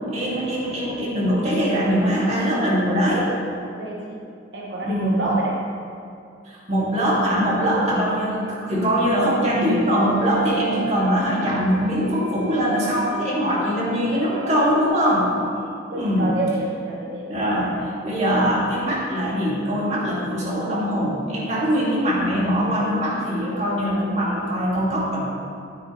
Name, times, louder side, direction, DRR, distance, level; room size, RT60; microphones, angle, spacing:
voice 1, 0.1-3.3 4.8-5.2 6.5-15.3 15.9-16.4 17.3-25.3, equal, 40° right, -5 dB, 2.3 m, -22 dB
voice 2, 3.6-4.2 4.5-5.7 15.9-17.6, right 2 dB, 70° right, -3 dB, 0.9 m, -28 dB
sound 1, 9.7-14.9, right 4 dB, 65° left, 2.0 m, -35 dB
12.5 x 9.6 x 3.2 m, 2.4 s
head